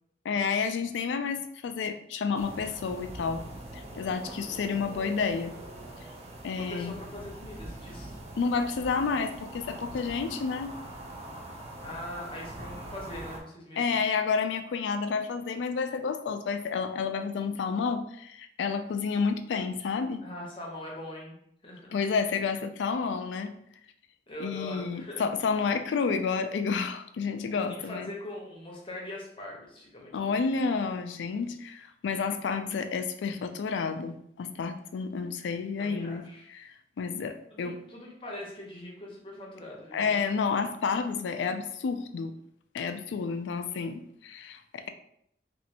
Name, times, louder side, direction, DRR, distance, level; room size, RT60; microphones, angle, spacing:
voice 1, 0.2-3.4 3.7-5.5 6.4-6.9 8.4-10.7 13.8-20.2 21.9-23.5 24.4-28.1 30.1-36.2 36.5-37.8 39.9-42.4 42.7-44.9, left 5 dB, 80° left, 8 dB, 0.3 m, -30 dB
sound 1, 2.3-13.4, right 1 dB, 35° right, 0.5 m, -43 dB
voice 2, 6.6-8.2 11.8-14.0 20.2-21.4 21.6-22.0 24.3-25.2 27.8-30.4 35.8-36.5 37.5-40.2, left 1 dB, 30° left, -2 dB, 0.8 m, -42 dB
3.0 x 2.6 x 2.8 m, 0.71 s
head